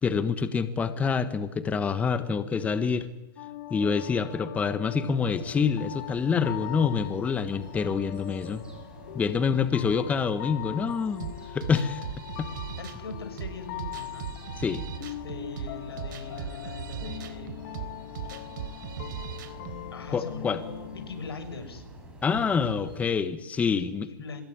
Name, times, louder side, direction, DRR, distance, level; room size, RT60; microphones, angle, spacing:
voice 1, 0.0-3.1 3.7-8.6 9.1-12.0 12.4-12.5 14.6-14.8 20.1-20.6 22.2-24.1, left 6 dB, 10° left, 11 dB, 1.3 m, -26 dB
sound 1, 3.4-21.3, left 14 dB, 45° left, 2.0 m, -42 dB
sound 2, 5.1-23.0, right 1 dB, 10° right, 7.8 m, -48 dB
sound 3, 11.2-19.8, right 8 dB, 55° right, 3.8 m, -38 dB
voice 2, 12.8-14.3 14.9-17.5 19.9-21.8 23.8-24.4, left 4 dB, 90° left, 8 dB, 6.5 m, -41 dB
25.0 x 21.5 x 9.5 m, 1.0 s
hypercardioid pair, 145°, 13 cm